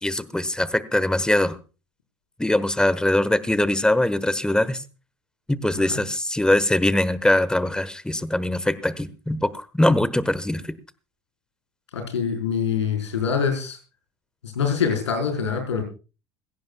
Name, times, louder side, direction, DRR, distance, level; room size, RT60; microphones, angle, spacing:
voice 1, 0.0-1.6 2.4-4.8 5.5-10.6, left 1 dB, 5° left, 16 dB, 1.2 m, -22 dB
voice 2, 11.9-13.8 14.4-15.8, left 6 dB, 80° left, 4 dB, 4.6 m, -24 dB
21.0 x 16.5 x 2.3 m, 0.33 s
hypercardioid pair, 70°, 15 cm